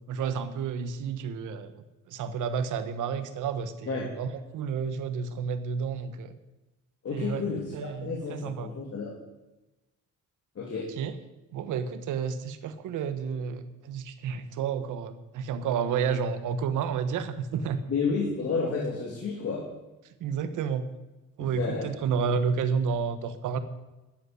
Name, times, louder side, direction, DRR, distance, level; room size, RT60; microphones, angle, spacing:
voice 1, 0.1-6.3 7.1-7.4 7.7-8.7 10.8-11.1 11.5-17.8 20.2-20.8 21.4-23.6, right 6 dB, 80° right, 11 dB, 1.3 m, -31 dB
voice 2, 7.0-7.7 8.0-9.1 10.5-10.9 17.9-19.6 21.4-21.9, left 4 dB, 55° left, -1 dB, 3.0 m, -31 dB
12.5 x 8.1 x 9.6 m, 1.1 s
cardioid pair, 90°, 30 cm